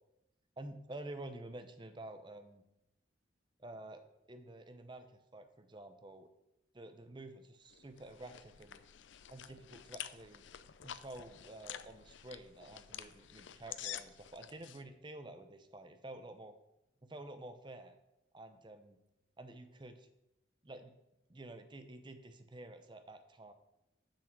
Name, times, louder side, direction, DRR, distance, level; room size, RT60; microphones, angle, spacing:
voice 1, 0.6-2.6 3.6-4.0 4.3-5.1 5.3-6.3 6.7-8.8 9.3-10.4 10.8-16.6 17.0-18.0 18.3-19.0 19.4-20.1 20.6-20.9 21.3-23.5, right 1 dB, 25° right, 9 dB, 0.7 m, -50 dB
sound 1, 7.7-14.8, left 11 dB, 80° left, 0.5 m, -49 dB
7.3 x 5.4 x 7.4 m, 0.86 s
head